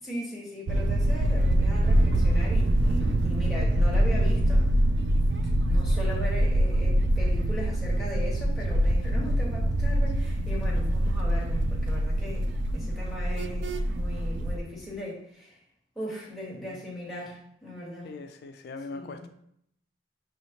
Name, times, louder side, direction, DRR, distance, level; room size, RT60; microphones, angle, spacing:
voice 1, 0.0-4.7 5.7-15.6 15.9-18.1 18.9-19.3, left 1 dB, ahead, -6 dB, 1.3 m, -38 dB
sound 1, 0.7-14.6, right 1 dB, 70° right, 0.4 m, -24 dB
voice 2, 18.0-19.3, left 3 dB, 60° left, 7 dB, 0.3 m, -40 dB
5.6 x 3.1 x 2.8 m, 0.71 s
head